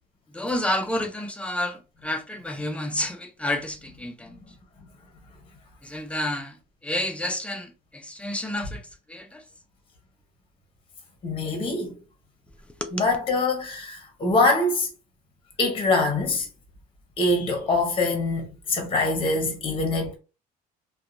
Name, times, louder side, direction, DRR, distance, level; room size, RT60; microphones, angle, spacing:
voice 1, 0.3-4.4 5.8-6.6 6.8-9.4 12.7-13.1, left 1 dB, 5° left, 0.5 m, -30 dB
voice 2, 11.2-12.0 12.9-14.9 15.6-16.5 17.2-20.2, left 2 dB, 30° left, 0.9 m, -24 dB
2.7 x 2.2 x 2.5 m
cardioid pair, 110°, 17 cm